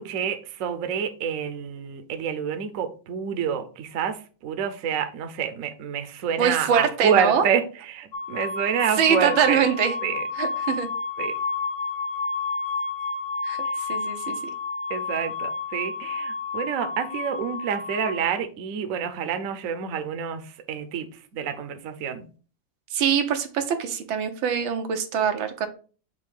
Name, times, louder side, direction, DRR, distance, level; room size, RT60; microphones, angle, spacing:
voice 1, 0.0-9.7 10.0-10.3 11.2-11.3 13.6-13.9 14.9-22.3, right 7 dB, 55° right, 1.0 m, -28 dB
voice 2, 6.4-7.4 9.0-9.9 10.4-10.9 13.4-13.6 13.9-14.4 22.9-25.7, right 7 dB, 90° right, 1.7 m, -23 dB
sound 1, 8.1-18.2, left 4 dB, 45° left, 1.4 m, -30 dB
6.5 x 2.7 x 5.4 m
omnidirectional pair, 2.1 m